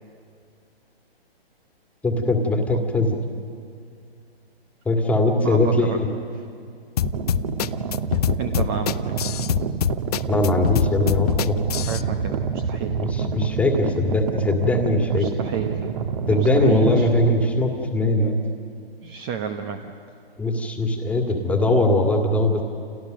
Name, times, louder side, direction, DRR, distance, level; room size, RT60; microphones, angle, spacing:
voice 1, 2.0-3.2 4.9-6.1 10.3-11.6 13.0-15.3 16.3-18.4 20.4-22.6, left 2 dB, 5° left, 3 dB, 2.0 m, -21 dB
voice 2, 3.0-3.5 5.4-6.1 6.3-6.4 8.1-9.4 11.7-13.0 15.1-16.0 16.3-17.1 19.0-19.9, right 7 dB, 20° right, 7 dB, 1.0 m, -32 dB
sound 1, 7.0-12.0, left 10 dB, 40° left, 0.6 m, -24 dB
sound 2, 7.0-17.4, right 6 dB, 40° right, 1.7 m, -28 dB
29.5 x 27.5 x 6.5 m, 2.3 s
hypercardioid pair, 145°, 31 cm